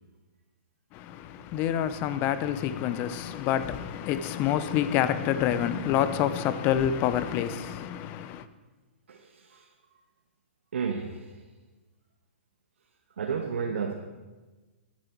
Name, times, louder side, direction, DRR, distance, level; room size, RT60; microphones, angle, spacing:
voice 1, 0.9-8.5, left 10 dB, 30° left, 0.7 m, -27 dB
voice 2, 9.1-9.6 10.7-11.4 13.2-13.9, right 6 dB, 80° right, 1.2 m, -32 dB
15.0 x 10.5 x 4.6 m
hypercardioid pair, 145°, 7 cm